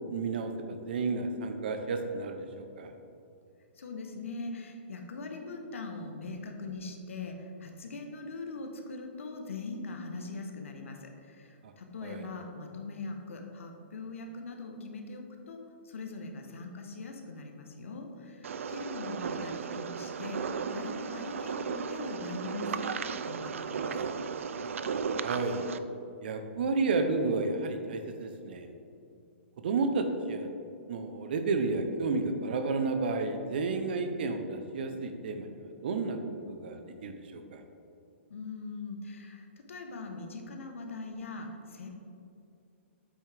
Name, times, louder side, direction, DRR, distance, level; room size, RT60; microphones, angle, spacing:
voice 1, 0.1-2.9 12.0-12.3 25.2-25.6 26.2-28.7 29.6-30.5 30.9-36.2 36.5-37.6, right 3 dB, 50° right, 7 dB, 0.7 m, -31 dB
voice 2, 3.8-23.9 38.3-41.9, left 3 dB, 85° left, 3 dB, 1.0 m, -41 dB
sound 1, 18.4-25.8, right 6 dB, 85° right, 0.4 m, -35 dB
8.3 x 6.0 x 3.4 m, 2.6 s
hypercardioid pair, 170°, 7 cm